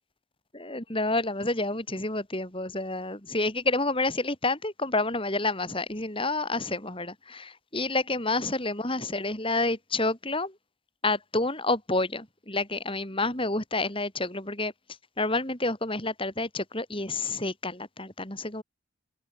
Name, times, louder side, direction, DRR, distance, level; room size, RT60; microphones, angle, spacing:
voice 1, 0.5-10.6 11.0-14.7 15.2-18.6, left 2 dB, 25° left, 4.5 m, -29 dB
open air
head